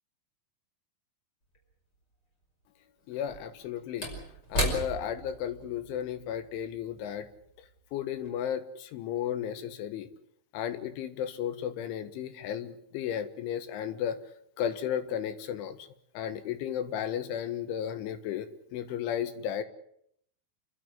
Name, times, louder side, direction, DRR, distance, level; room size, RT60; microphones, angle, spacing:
Slam / Wood, 1.6-1.7 3.1-7.8 8.1-8.3, right 1 dB, 20° left, 5.8 m, -36 dB
voice 1, 3.1-4.1 4.5-7.3 7.9-10.1 10.5-14.2 14.6-15.8 16.2-19.6, left 9 dB, 90° left, 10 dB, 3.9 m, -34 dB
28.5 x 12.5 x 9.9 m, 0.73 s
omnidirectional pair, 5.3 m